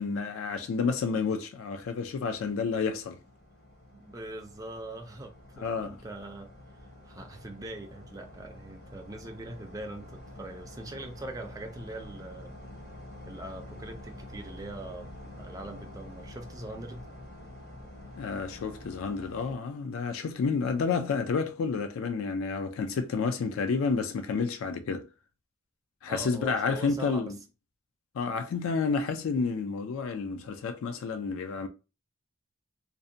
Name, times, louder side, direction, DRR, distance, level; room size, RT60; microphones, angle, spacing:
voice 1, 0.0-3.2 5.6-6.0 18.2-25.0 26.0-27.4 28.1-31.7, left 5 dB, 80° left, 0.3 m, -30 dB
sound 1, 2.1-19.5, left 1 dB, 50° left, 0.7 m, -47 dB
voice 2, 3.9-6.5 7.1-12.6 13.3-17.1 26.1-27.3, right 1 dB, 15° right, 0.3 m, -42 dB
2.6 x 2.1 x 2.6 m
head